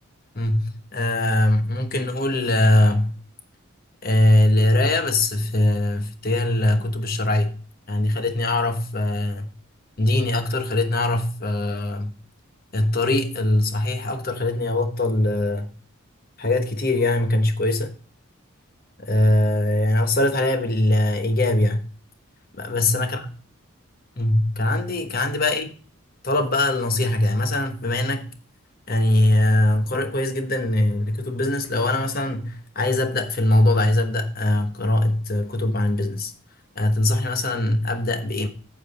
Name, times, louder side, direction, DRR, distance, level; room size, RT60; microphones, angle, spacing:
voice 1, 0.3-3.1 4.0-7.5 7.9-9.5 10.0-12.1 12.7-15.7 16.4-17.9 19.0-21.8 22.5-23.3 24.2-25.7 26.2-28.3 28.9-36.3 36.8-38.5, left 1 dB, 45° left, 1.2 m, -21 dB
9.2 x 7.2 x 4.1 m
head